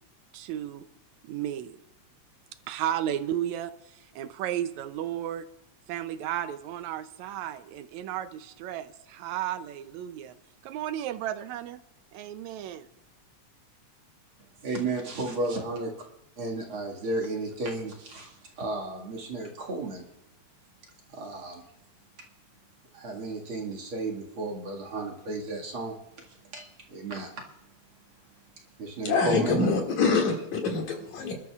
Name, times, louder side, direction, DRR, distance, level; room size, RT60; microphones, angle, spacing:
voice 1, 0.3-0.9 1.2-1.8 2.7-5.5 5.9-10.3 10.6-11.8 12.1-12.9, right 11 dB, 80° right, 11 dB, 1.9 m, -33 dB
voice 2, 14.6-15.9 16.4-20.1 21.1-21.6 22.9-27.5 28.8-29.7, right 2 dB, 50° right, -1 dB, 2.6 m, -33 dB
voice 3, 29.0-31.3, left 4 dB, 75° left, 1 dB, 3.6 m, -25 dB
27.0 x 12.5 x 2.4 m, 0.92 s
omnidirectional pair, 3.3 m